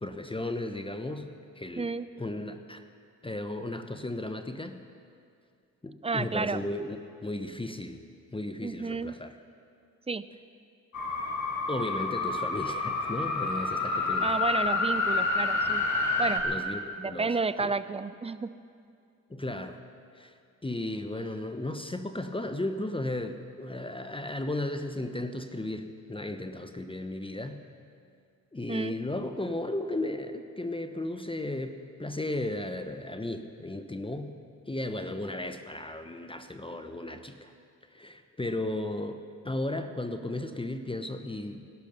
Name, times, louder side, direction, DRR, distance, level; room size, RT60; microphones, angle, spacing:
voice 1, 0.0-1.3 1.6-1.9 2.2-2.8 3.2-4.8 5.8-8.0 8.3-9.4 11.7-14.3 16.4-17.7 19.3-19.8 20.1-20.3 20.6-27.6 28.5-34.3 34.7-37.5 37.9-41.7, left 1 dB, 15° left, 8 dB, 1.0 m, -35 dB
voice 2, 1.8-2.1 6.0-6.6 8.6-9.1 10.1-10.2 14.2-15.8 16.2-16.5 17.0-18.6 28.7-29.0, right 4 dB, 15° right, 15 dB, 0.6 m, -31 dB
sound 1, 10.9-16.4, left 3 dB, 50° left, 2.4 m, -28 dB
19.0 x 11.5 x 5.4 m, 2.4 s
hypercardioid pair, 50°, 38 cm